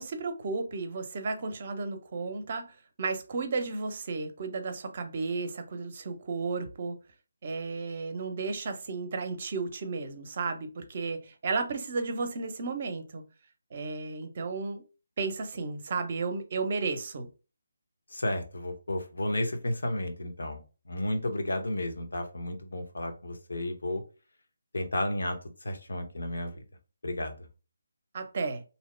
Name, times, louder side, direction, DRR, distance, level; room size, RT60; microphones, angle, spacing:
voice 1, 0.0-7.0 7.4-13.2 13.7-14.8 15.2-17.3 28.1-28.6, right 4 dB, 40° right, 0.6 m, -33 dB
voice 2, 18.1-24.0 24.7-26.6 27.0-27.5, left 1 dB, 65° left, 0.7 m, -32 dB
2.7 x 2.0 x 3.1 m
figure-of-eight pair, 150°, 0 cm